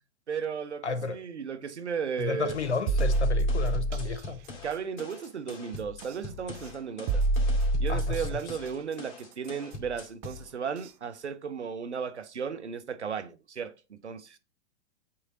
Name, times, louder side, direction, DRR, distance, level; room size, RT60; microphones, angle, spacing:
voice 1, 0.3-2.6 4.6-7.2 7.8-14.4, right 6 dB, 85° right, 0.8 m, -35 dB
voice 2, 0.8-1.2 2.2-4.4 7.9-8.4, left 4 dB, 85° left, 0.9 m, -32 dB
sound 1, 2.5-10.5, left 3 dB, 40° left, 2.3 m, -44 dB
sound 2, 2.9-4.2 6.0-6.1 7.1-8.4 10.2-10.3 10.8-10.9, right 1 dB, 40° right, 0.7 m, -26 dB
8.6 x 3.3 x 3.7 m
figure-of-eight pair, 100°, 34 cm